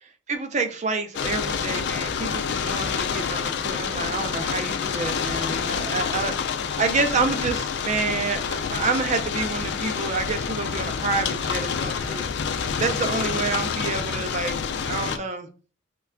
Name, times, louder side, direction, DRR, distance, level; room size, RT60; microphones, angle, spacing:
voice 1, 0.0-14.6 14.9-15.5, right 4 dB, 35° right, 6 dB, 0.4 m, -28 dB
sound 1, 1.1-15.2, left 6 dB, 55° left, 0.3 m, -28 dB
3.2 x 2.2 x 3.6 m, 0.37 s
head